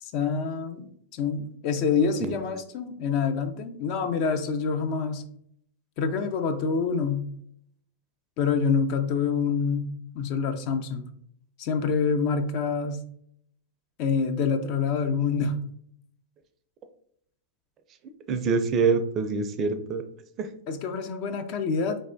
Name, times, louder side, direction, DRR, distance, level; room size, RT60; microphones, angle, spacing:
voice 1, 0.0-5.2 6.0-7.3 8.4-11.1 11.6-13.0 14.0-15.6 20.7-22.0, left 5 dB, 50° left, 8 dB, 0.5 m, -26 dB
voice 2, 18.3-20.0 20.4-20.5, right 4 dB, 35° right, 8 dB, 0.5 m, -25 dB
4.2 x 3.2 x 2.6 m, 0.68 s
hypercardioid pair, 105°, 0 cm